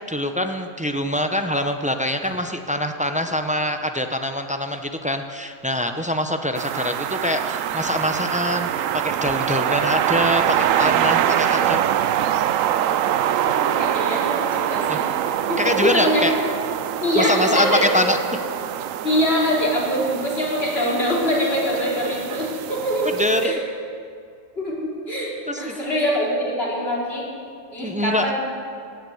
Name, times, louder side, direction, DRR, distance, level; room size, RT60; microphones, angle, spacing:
voice 1, 0.1-11.9 14.9-15.0 15.6-16.3 17.2-18.2 23.2-23.6 25.5-25.9 27.8-28.3, left 1 dB, 10° right, 6 dB, 0.4 m, -24 dB
sound 1, 6.5-23.5, right 10 dB, 80° right, 1.0 m, -24 dB
voice 2, 13.5-15.1 15.5-16.4 17.0-18.0 19.0-23.1 23.4-23.6 24.6-27.2 27.7-28.3, equal, 50° left, -5 dB, 3.7 m, -23 dB
17.5 x 8.3 x 7.8 m, 2.3 s
omnidirectional pair, 1.4 m